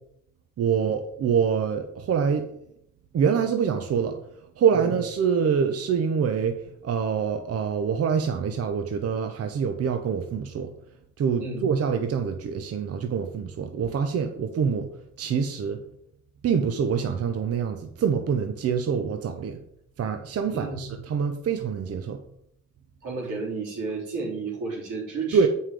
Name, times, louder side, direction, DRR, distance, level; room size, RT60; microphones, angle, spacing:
voice 1, 0.6-2.5 3.1-4.2 4.6-10.7 11.2-14.9 15.2-15.8 16.4-19.6 20.0-22.2 25.3-25.5, right 6 dB, 55° right, 6 dB, 0.8 m, -25 dB
voice 2, 20.5-20.8 23.0-25.5, right 4 dB, 85° right, -3 dB, 3.6 m, -32 dB
7.6 x 5.6 x 4.9 m, 0.74 s
cardioid pair, 90°, 30 cm